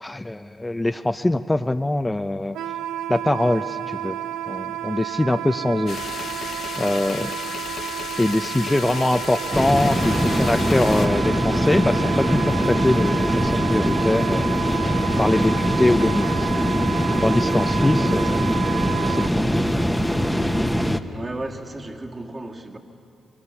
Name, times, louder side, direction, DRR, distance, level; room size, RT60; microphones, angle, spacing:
voice 1, 0.0-2.6 3.1-4.2 4.5-6.3 6.8-7.3 8.2-16.5 17.2-18.4 19.0-19.7 20.5-20.6, left 1 dB, 15° left, 0.6 m, -23 dB
Wind instrument woodwind instrument, 2.5-19.3, right 11 dB, 85° right, 0.5 m, -31 dB
sound 1, 5.9-11.1, left 7 dB, 65° left, 0.6 m, -34 dB
sound 2, 9.5-21.0, equal, ahead, 1.1 m, -22 dB
voice 2, 18.0-18.6 21.1-22.8, right 2 dB, 30° right, 2.1 m, -34 dB
23.5 x 23.0 x 7.1 m
supercardioid pair, 55°, 0 cm